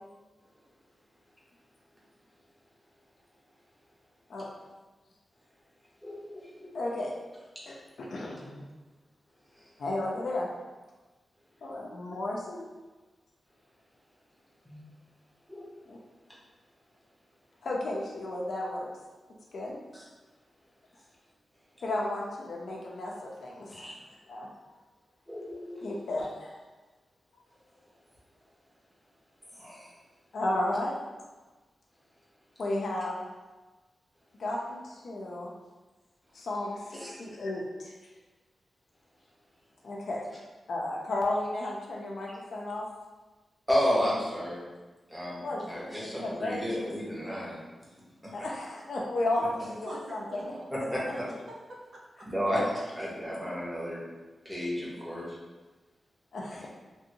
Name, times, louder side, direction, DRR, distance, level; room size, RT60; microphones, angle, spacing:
voice 1, 6.0-6.7 14.7-14.8 15.5-15.7 19.9-20.0 23.7-23.9 25.3-26.0 29.5-29.9 30.5-30.6 36.9-37.1 43.7-44.6 45.1-47.6 48.2-48.3 50.7-51.3 52.3-54.0 54.4-55.4 56.5-56.7, equal, 5° right, -6 dB, 0.8 m, -32 dB
voice 2, 6.7-7.1 7.7-8.6 9.8-10.5 11.6-12.6 15.9-16.0 17.6-18.9 19.5-19.8 21.8-23.9 24.3-24.5 25.8-26.5 30.3-31.0 32.6-33.2 34.4-35.5 36.3-37.9 39.8-40.2 40.7-42.8 45.4-45.7 46.2-46.7 48.3-50.5 52.5-52.7 56.3-56.7, left 1 dB, 75° left, -2 dB, 0.5 m, -33 dB
voice 3, 49.9-50.7 51.1-52.7, right 1 dB, 55° right, -3 dB, 0.6 m, -46 dB
3.0 x 2.6 x 2.7 m, 1.2 s
wide cardioid pair, 140°, 0 cm